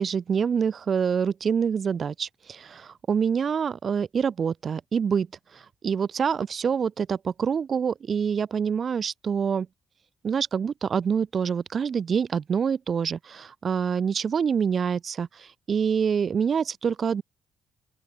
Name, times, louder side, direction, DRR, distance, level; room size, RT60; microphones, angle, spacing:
voice 1, 0.0-5.3 5.8-9.7 10.2-15.3 15.7-17.2, right 6 dB, 50° right, 1.2 m, -26 dB
open air
cardioid pair, 90°, 0 cm